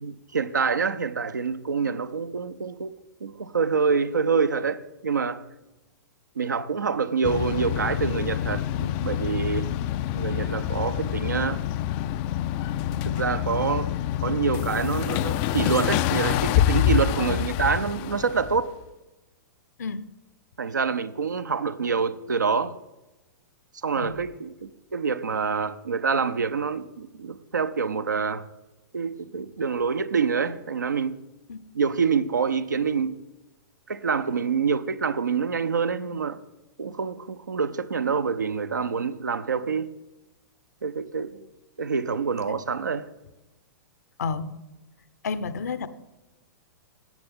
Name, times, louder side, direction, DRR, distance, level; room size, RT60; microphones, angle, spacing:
voice 1, 0.0-2.9 3.2-5.4 6.4-9.7 10.1-11.6 13.0-13.9 14.2-18.7 20.6-22.7 23.8-28.5 28.9-31.2 31.7-33.2 33.9-36.4 36.8-39.9 40.8-41.4 41.8-43.1, right 5 dB, 75° right, 0.6 m, -26 dB
sound 1, 7.2-18.6, left 12 dB, 35° left, 0.3 m, -26 dB
voice 2, 44.2-44.5 45.2-45.9, left 5 dB, 60° left, 0.7 m, -30 dB
17.0 x 7.0 x 3.6 m
figure-of-eight pair, 105°, 10 cm